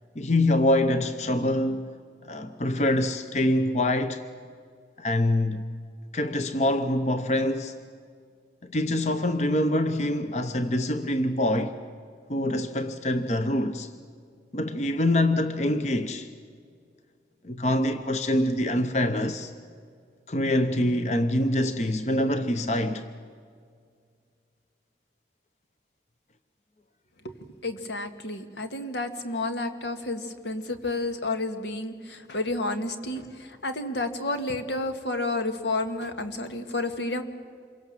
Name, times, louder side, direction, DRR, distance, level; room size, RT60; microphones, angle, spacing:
voice 1, 0.2-1.9 2.2-4.2 5.0-5.6 6.1-7.7 8.6-11.8 12.3-13.9 14.5-16.3 17.4-19.5 20.3-23.1, left 1 dB, 40° left, 0.9 m, -25 dB
voice 2, 27.6-37.2, left 2 dB, 85° left, 1.9 m, -31 dB
27.5 x 23.5 x 7.5 m
head